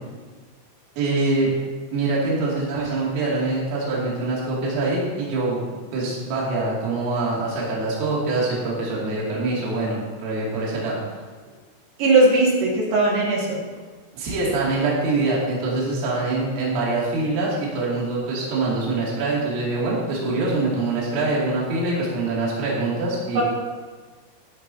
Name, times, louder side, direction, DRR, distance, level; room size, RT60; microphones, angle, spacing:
voice 1, 1.0-1.5 1.9-11.0 14.1-23.4, right 2 dB, 80° right, -6 dB, 5.2 m, -24 dB
voice 2, 12.0-13.6 23.4-23.5, right 2 dB, 60° right, -4 dB, 3.5 m, -18 dB
14.5 x 12.0 x 2.8 m, 1.4 s
omnidirectional pair, 5.9 m